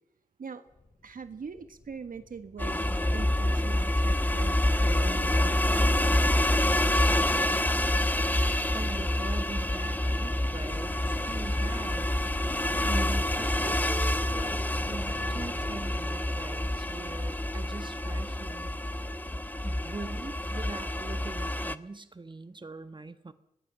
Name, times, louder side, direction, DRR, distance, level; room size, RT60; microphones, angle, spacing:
sound 1, 0.7-17.7, left 3 dB, 45° left, 2.5 m, -48 dB
voice 1, 1.0-2.9 3.1-6.3, right 5 dB, 75° right, 9 dB, 1.4 m, -42 dB
sound 2, 2.6-21.7, left 1 dB, 10° left, 1.0 m, -27 dB
voice 2, 8.7-12.1 12.8-14.6 14.9-18.7 19.6-23.3, right 3 dB, 35° right, 11 dB, 1.3 m, -42 dB
23.0 x 20.0 x 7.5 m, 0.82 s
wide cardioid pair, 65°, 14 cm